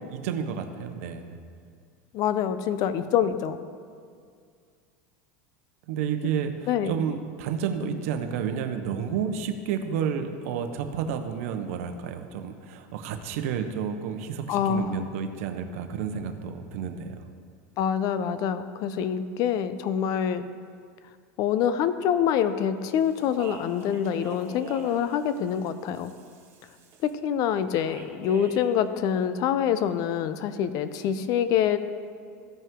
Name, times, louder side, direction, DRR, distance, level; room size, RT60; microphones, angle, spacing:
voice 1, 0.1-1.4 5.9-17.2, right 7 dB, 75° right, 7 dB, 0.8 m, -31 dB
voice 2, 2.1-3.6 6.7-7.0 14.5-15.0 17.8-20.4 21.4-26.1 27.0-31.8, left 9 dB, 50° left, 12 dB, 0.6 m, -26 dB
Speech, 22.9-27.1 27.8-28.7, right 4 dB, 35° right, 1.9 m, -45 dB
14.5 x 5.5 x 3.7 m, 2.2 s
supercardioid pair, 120°, 8 cm